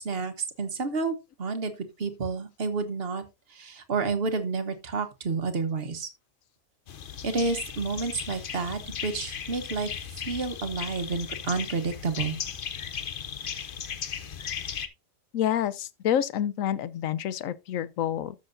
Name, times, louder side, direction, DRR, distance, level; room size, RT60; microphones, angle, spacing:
voice 1, 0.0-3.2 3.5-6.1 7.2-12.4, right 4 dB, 50° right, 1.4 m, -30 dB
sound 1, 6.9-14.9, left 8 dB, 50° left, 0.8 m, -36 dB
voice 2, 15.3-18.3, left 10 dB, 80° left, 1.0 m, -28 dB
13.5 x 6.4 x 2.6 m
omnidirectional pair, 1.4 m